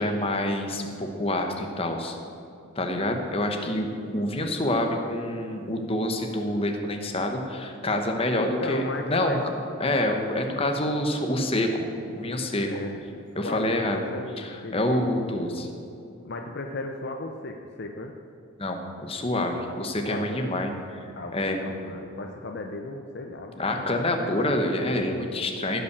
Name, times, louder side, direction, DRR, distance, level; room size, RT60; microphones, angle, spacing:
voice 1, 0.0-2.2 2.8-3.9 4.1-8.8 9.1-9.5 9.8-12.7 13.3-14.0 14.4-15.7 18.6-20.7 21.3-21.6 23.6-25.8, left 1 dB, 25° left, 4 dB, 1.1 m, -27 dB
voice 2, 8.4-9.4 12.3-15.1 16.2-18.1 20.1-20.6 21.2-24.5, left 2 dB, 50° left, 4 dB, 0.6 m, -36 dB
15.5 x 5.7 x 6.8 m, 2.7 s
head